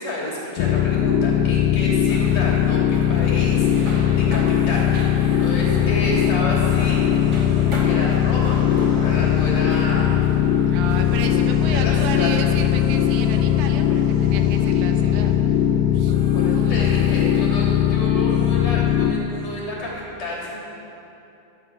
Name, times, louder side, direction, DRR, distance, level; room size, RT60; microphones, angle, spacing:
voice 1, 0.0-4.8 5.4-7.1 7.8-10.2 11.7-12.3 16.3-20.6, left 1 dB, 50° left, -5 dB, 4.4 m, -30 dB
sound 1, 0.6-19.1, left 9 dB, 90° left, 3.0 m, -19 dB
sound 2, 2.1-12.6, right 1 dB, 30° right, 2.2 m, -35 dB
sound 3, 3.5-18.6, equal, 10° right, 2.0 m, -40 dB
voice 2, 10.7-15.6 15.9-16.2 16.5-16.9, right 6 dB, 85° right, 5 dB, 3.4 m, -33 dB
18.0 x 12.5 x 6.3 m, 2.9 s
omnidirectional pair, 4.9 m